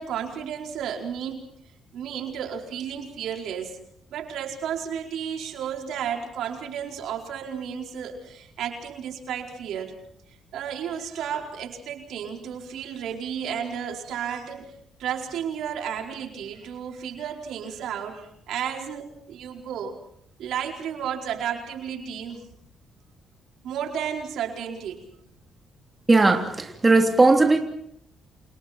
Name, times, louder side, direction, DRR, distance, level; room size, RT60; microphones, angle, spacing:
voice 1, 0.0-1.5 1.9-3.8 4.1-9.9 10.5-14.7 15.0-20.0 20.4-22.4 23.6-25.5, right 8 dB, 80° right, 3 dB, 4.7 m, -33 dB
voice 2, 26.1-27.6, right 3 dB, 20° right, 4 dB, 3.2 m, -18 dB
29.0 x 29.0 x 4.4 m, 0.72 s
cardioid pair, 90°, 0 cm